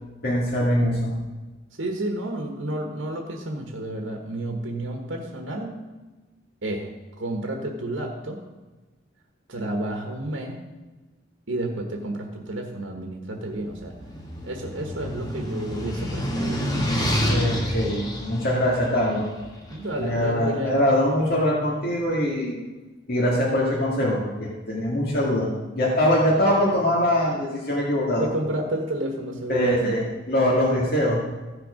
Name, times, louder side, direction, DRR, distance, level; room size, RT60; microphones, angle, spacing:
voice 1, 0.2-1.2 17.3-19.3 20.0-22.6 23.1-28.3 29.5-31.2, equal, 50° left, -5 dB, 2.1 m, -23 dB
voice 2, 1.7-5.8 6.6-8.4 9.5-10.6 11.5-14.0 14.4-16.7 19.7-20.8 28.1-29.9, right 1 dB, 75° right, 2 dB, 1.4 m, -31 dB
sound 1, 13.6-19.9, equal, 20° left, 1.8 m, -28 dB
15.0 x 6.9 x 5.1 m, 1.2 s
head